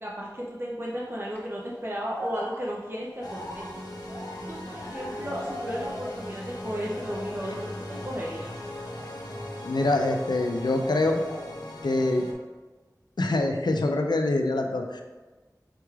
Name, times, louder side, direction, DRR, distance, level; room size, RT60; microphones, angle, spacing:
voice 1, 0.0-3.7 4.5-8.5, equal, 35° right, -4 dB, 0.6 m, -34 dB
sound 1, 1.0-1.4 2.0-6.3 6.6-7.4 7.8-8.1 8.8-10.5 10.7-11.5, equal, 30° left, 1.3 m, -42 dB
sound 2, 3.2-12.3, left 1 dB, 70° left, 0.8 m, -39 dB
voice 2, 9.6-11.2 11.8-12.3 13.2-15.0, left 2 dB, 90° left, 4 dB, 0.4 m, -25 dB
5.8 x 3.1 x 2.3 m, 1.3 s
wide cardioid pair, 40°, 7 cm